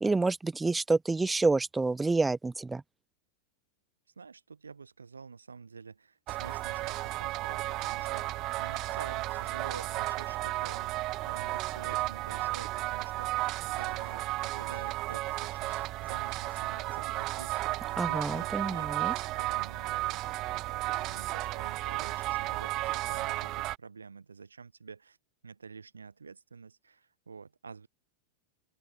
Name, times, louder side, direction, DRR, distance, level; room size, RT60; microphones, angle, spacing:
voice 1, 0.0-2.8 18.0-19.1, right 3 dB, 10° right, 0.5 m, -28 dB
voice 2, 4.2-17.6 17.9-25.2 25.4-27.9, right 5 dB, 75° right, 2.7 m, -49 dB
sound 1, 6.3-23.8, right 18 dB, 40° right, 0.9 m, -33 dB
open air
figure-of-eight pair, 90°, 0 cm